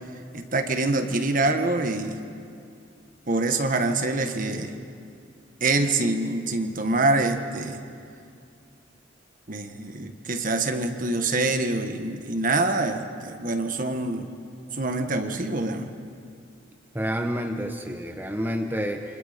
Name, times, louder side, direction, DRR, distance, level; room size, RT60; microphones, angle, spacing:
voice 1, 0.3-2.2 3.3-4.7 5.6-7.8 9.5-14.3 14.7-15.9, right 2 dB, 45° right, 6 dB, 1.5 m, -25 dB
voice 2, 16.9-19.0, equal, 10° right, 4 dB, 1.0 m, -29 dB
28.5 x 25.5 x 5.2 m, 2.4 s
head